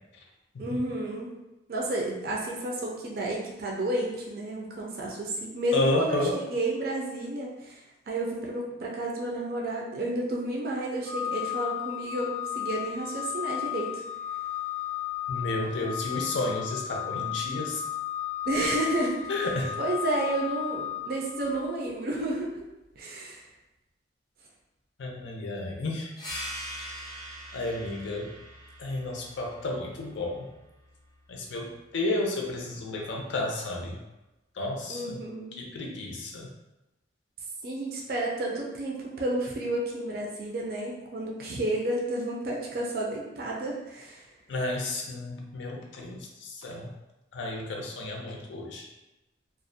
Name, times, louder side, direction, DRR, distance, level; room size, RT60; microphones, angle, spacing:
voice 1, 0.6-1.3 1.7-6.2 6.5-7.8 8.1-14.0 18.5-19.2 19.8-22.5 23.0-23.4 34.9-35.6 37.6-44.3, right 1 dB, 55° right, -2 dB, 0.4 m, -31 dB
voice 2, 5.7-6.4 15.3-17.8 19.3-19.8 25.0-26.1 27.5-28.3 28.8-30.5 31.3-34.0 34.6-35.2 35.6-36.5 44.5-46.9 47.3-48.9, left 2 dB, 85° left, 0 dB, 0.5 m, -32 dB
Organ, 11.0-21.8, left 12 dB, 85° right, 0.7 m, -34 dB
sound 1, 26.2-31.3, equal, 25° left, 0.5 m, -42 dB
2.4 x 2.0 x 2.5 m, 0.99 s
head